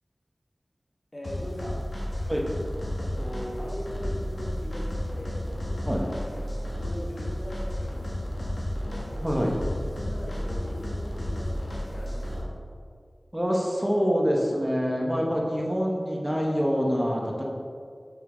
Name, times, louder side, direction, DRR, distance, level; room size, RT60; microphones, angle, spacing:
voice 1, 1.1-1.8 3.0-9.2 9.7-12.5, equal, 40° left, -2 dB, 1.4 m, -40 dB
sound 1, 1.2-12.4, left 1 dB, 85° left, 1.7 m, -32 dB
voice 2, 9.2-9.5 13.3-17.4, equal, 15° right, -2 dB, 1.1 m, -25 dB
6.5 x 5.6 x 3.9 m, 2.2 s
wide cardioid pair, 40°, 0 cm